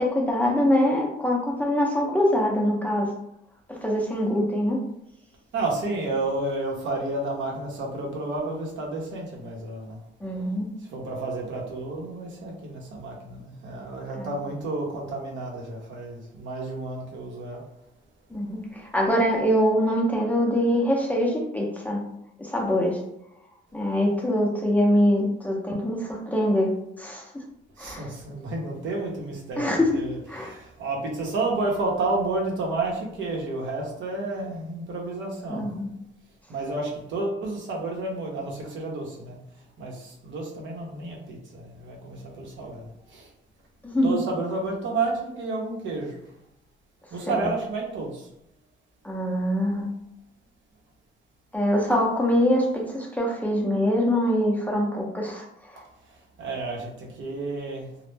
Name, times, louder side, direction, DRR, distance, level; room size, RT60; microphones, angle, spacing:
voice 1, 0.0-3.1 3.7-4.8 10.2-10.7 14.2-14.4 18.3-22.0 22.4-23.0 23.7-26.7 27.0-27.2 27.8-28.1 29.6-29.9 30.3-30.5 35.5-35.9 43.8-44.2 47.3-47.5 49.0-49.8 51.5-55.4, equal, 10° left, -1 dB, 0.5 m, -24 dB
voice 2, 5.5-10.0 10.9-17.6 27.8-35.7 36.5-39.4 39.8-43.3 44.0-46.2 47.1-48.3 55.8-57.9, right 2 dB, 75° right, -1 dB, 0.7 m, -31 dB
2.1 x 2.0 x 3.1 m, 0.81 s
cardioid pair, 90°, 20 cm